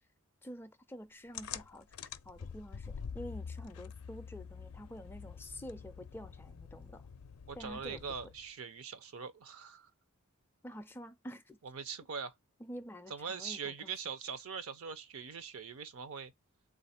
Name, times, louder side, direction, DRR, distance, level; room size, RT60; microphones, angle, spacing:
voice 1, 0.4-1.9 2.2-7.1 7.5-8.0 10.6-11.6 12.6-13.9, equal, 10° left, 0.3 m, -48 dB
sound 1, 1.3-8.5, left 6 dB, 80° left, 0.4 m, -46 dB
voice 2, 7.5-9.9 11.6-12.3 13.1-16.3, right 6 dB, 75° right, 0.6 m, -42 dB
3.5 x 2.4 x 4.1 m
head